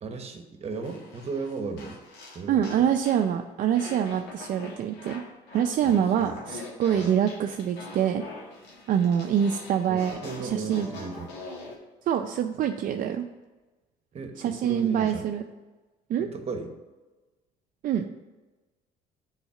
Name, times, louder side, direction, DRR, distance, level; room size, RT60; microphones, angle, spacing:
voice 1, 0.0-2.0 2.3-2.9 5.8-6.5 7.0-7.1 9.9-11.3 14.1-15.2 16.2-16.7, right 4 dB, 40° right, 6 dB, 1.0 m, -36 dB
sound 1, 0.8-3.3 3.8-11.8, left 3 dB, 80° left, 1.7 m, -43 dB
voice 2, 2.5-5.2 5.5-8.2 8.9-10.9 12.1-13.3 14.4-15.4 16.1-16.3 17.8-18.1, right 9 dB, 55° right, 5 dB, 0.4 m, -25 dB
7.1 x 4.0 x 5.7 m, 1.2 s
cardioid pair, 110°, 17 cm